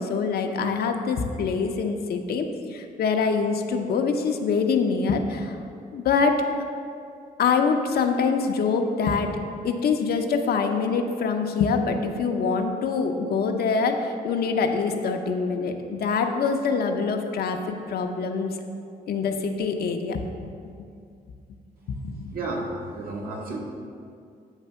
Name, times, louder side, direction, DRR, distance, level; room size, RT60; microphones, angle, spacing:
voice 1, 0.0-5.6 5.9-6.4 7.4-9.3 9.6-18.6 19.1-20.3 21.9-22.3, left 5 dB, 70° left, 5 dB, 0.7 m, -25 dB
voice 2, 22.3-23.6, right 2 dB, 65° right, -2 dB, 1.5 m, -32 dB
9.0 x 3.3 x 5.6 m, 2.4 s
cardioid pair, 85°, 17 cm